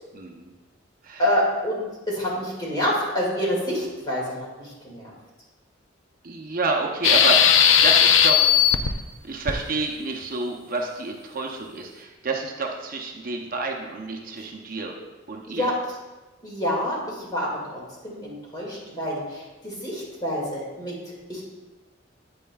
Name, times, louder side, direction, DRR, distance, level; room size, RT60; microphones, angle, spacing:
voice 1, 0.1-0.5 1.0-1.2 6.2-9.0 9.2-15.0 15.3-15.7, right 3 dB, 45° right, 1 dB, 0.7 m, -30 dB
voice 2, 1.2-1.8 2.1-5.1 15.5-15.7 16.4-21.4, equal, 20° left, -4 dB, 2.1 m, -27 dB
sound 1, 7.0-8.9 9.5-9.6, left 8 dB, 85° left, 0.5 m, -16 dB
8.8 x 8.4 x 2.3 m, 1.2 s
head